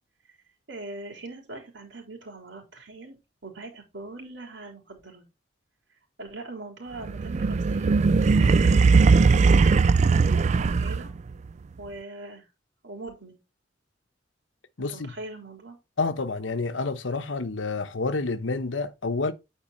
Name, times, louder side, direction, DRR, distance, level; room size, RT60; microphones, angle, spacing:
voice 1, 0.7-3.2 3.4-5.2 6.2-9.2 9.5-11.1 11.8-12.4 12.8-13.4 14.8-15.8, right 2 dB, 75° right, 3.6 m, -41 dB
sound 1, 7.1-11.3, right 4 dB, 40° right, 0.3 m, -19 dB
voice 2, 14.8-15.1 16.0-19.3, left 3 dB, 80° left, 1.0 m, -29 dB
9.0 x 4.6 x 4.1 m
head